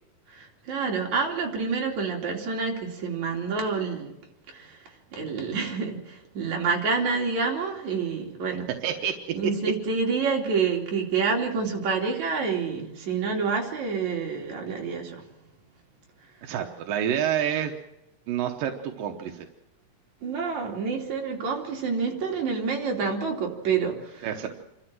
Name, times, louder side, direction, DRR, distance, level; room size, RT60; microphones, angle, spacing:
voice 1, 0.3-4.1 4.5-8.7 9.3-15.2 20.2-24.5, right 5 dB, 60° right, 0 dB, 4.1 m, -28 dB
voice 2, 8.8-9.1 9.4-9.5 16.4-17.7 18.3-19.5 24.2-24.5, right 9 dB, 85° right, 4 dB, 2.7 m, -28 dB
28.0 x 13.0 x 7.6 m, 0.94 s
omnidirectional pair, 3.8 m